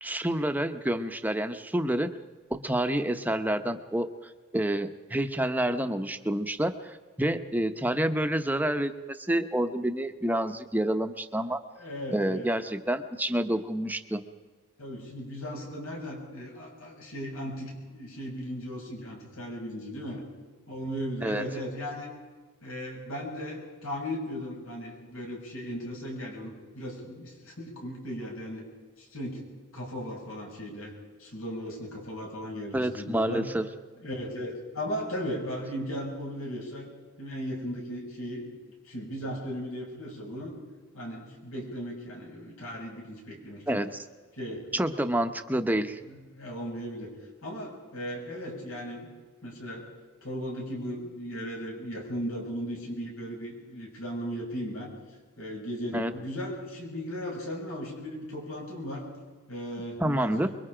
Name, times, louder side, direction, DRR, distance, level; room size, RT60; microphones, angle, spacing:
voice 1, 0.0-2.2 2.5-11.6 12.1-14.2 21.2-21.4 32.7-33.6 43.7-44.1 44.7-46.0 55.9-56.1 60.0-60.6, right 1 dB, 10° right, 7 dB, 0.9 m, -28 dB
voice 2, 11.8-12.5 14.8-20.2 20.7-22.1 22.6-28.7 29.0-29.5 29.7-30.9 31.2-33.5 34.0-36.9 37.2-38.5 38.8-40.5 40.9-43.8 44.3-44.6 45.3-45.8 46.1-47.1 47.4-49.1 49.4-49.9 50.2-54.9 55.4-59.1 59.5-60.6, equal, 85° left, -1 dB, 7.2 m, -37 dB
25.0 x 22.5 x 5.0 m, 1.4 s
head